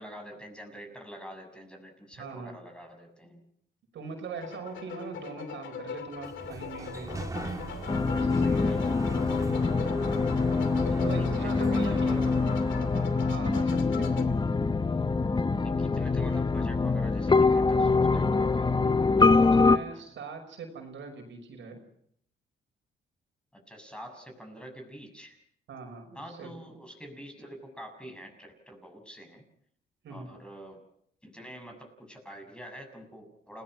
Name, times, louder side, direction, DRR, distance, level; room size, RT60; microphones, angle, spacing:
voice 1, 0.0-3.5 8.6-9.1 10.9-12.6 13.5-14.0 15.6-20.0 23.5-25.4 26.1-29.5 30.1-30.8 31.2-33.6, equal, 5° left, 3 dB, 6.8 m, -46 dB
voice 2, 2.1-2.6 3.9-7.3 8.0-8.9 11.0-12.2 12.9-14.6 19.2-21.8 25.7-26.5 30.0-30.3, right 5 dB, 70° right, 3 dB, 5.8 m, -41 dB
sound 1, 4.4-14.2, left 7 dB, 70° left, 2.6 m, -42 dB
Sliding door, 6.1-13.4, right 2 dB, 15° right, 3.0 m, -40 dB
sound 2, 7.9-19.8, left 4 dB, 20° left, 1.0 m, -24 dB
29.0 x 18.0 x 6.1 m, 0.66 s
cardioid pair, 90°, 20 cm